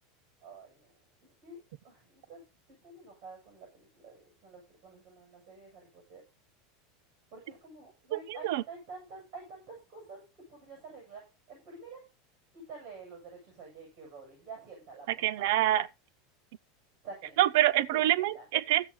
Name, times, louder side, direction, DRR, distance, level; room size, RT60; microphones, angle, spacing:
voice 1, 0.4-2.4 2.7-6.2 7.3-10.2 10.5-12.0 12.5-15.6 17.0-17.5 17.9-18.4, right 3 dB, 30° right, 7.8 m, -49 dB
voice 2, 8.1-8.6 15.2-15.9 17.4-18.9, right 14 dB, 60° right, 0.6 m, -26 dB
16.0 x 6.9 x 4.1 m
supercardioid pair, 170°, 0 cm